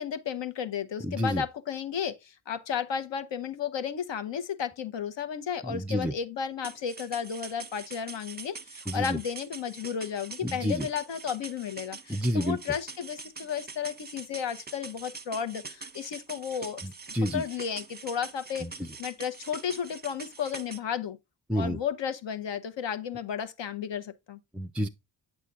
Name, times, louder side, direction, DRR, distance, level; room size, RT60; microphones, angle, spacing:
voice 1, 0.0-16.8 17.3-18.7 19.0-21.2 21.5-24.4, left 7 dB, 60° left, 1.0 m, -33 dB
voice 2, 1.1-1.4 5.7-6.1 8.9-9.2 10.4-10.9 12.1-12.6 16.8-17.4 18.6-18.7 21.5-21.8 24.5-24.9, equal, 5° right, 0.4 m, -29 dB
sound 1, 6.6-20.8, right 4 dB, 20° right, 0.9 m, -44 dB
8.2 x 6.6 x 2.4 m
supercardioid pair, 55°, 48 cm